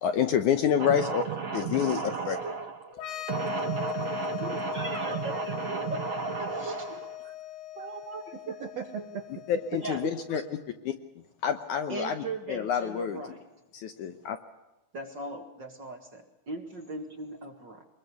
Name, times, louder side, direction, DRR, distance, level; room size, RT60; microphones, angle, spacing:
voice 1, 0.0-1.2 1.5-2.4 9.5-10.4 10.8-10.9 11.4-13.2 13.7-14.4, left 8 dB, 70° left, 8 dB, 2.0 m, -28 dB
voice 2, 0.8-2.9 3.3-7.3 8.6-9.2, right 6 dB, 65° right, 6 dB, 1.8 m, -34 dB
sound 1, 2.9-10.4, left 13 dB, 90° left, 3.8 m, -39 dB
voice 3, 4.4-7.0 7.8-8.6 9.8-10.0 11.9-13.5 14.9-17.8, right 2 dB, 40° right, 3 dB, 1.8 m, -39 dB
23.5 x 21.5 x 6.9 m, 1.0 s
omnidirectional pair, 4.4 m